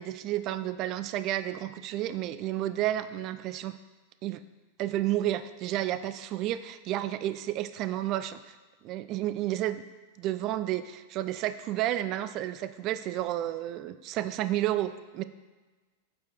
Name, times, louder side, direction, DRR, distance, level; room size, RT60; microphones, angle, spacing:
voice 1, 0.0-3.8 4.2-4.4 4.8-8.6 8.8-9.8 10.2-15.2, right 13 dB, 40° right, 13 dB, 0.3 m, -31 dB
8.3 x 6.0 x 3.1 m, 1.3 s
figure-of-eight pair, 90°, 0 cm